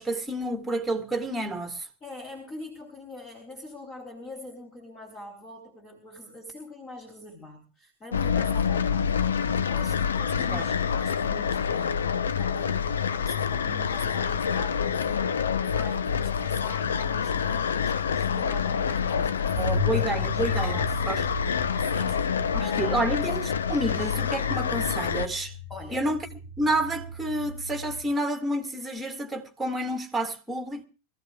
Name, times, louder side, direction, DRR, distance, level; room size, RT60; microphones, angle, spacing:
voice 1, 0.0-1.9 10.5-10.6 19.2-19.3 19.6-21.2 22.5-25.5 25.9-26.3 26.6-30.8, right 1 dB, 5° right, 2.1 m, -29 dB
voice 2, 2.0-19.8 20.1-22.3 22.6-23.1 25.7-26.1, left 1 dB, 25° left, 3.5 m, -44 dB
sound 1, 8.1-25.3, left 7 dB, 65° left, 0.8 m, -27 dB
sound 2, 19.5-28.0, left 2 dB, 45° left, 5.4 m, -36 dB
24.5 x 15.5 x 2.4 m
figure-of-eight pair, 90°, 0 cm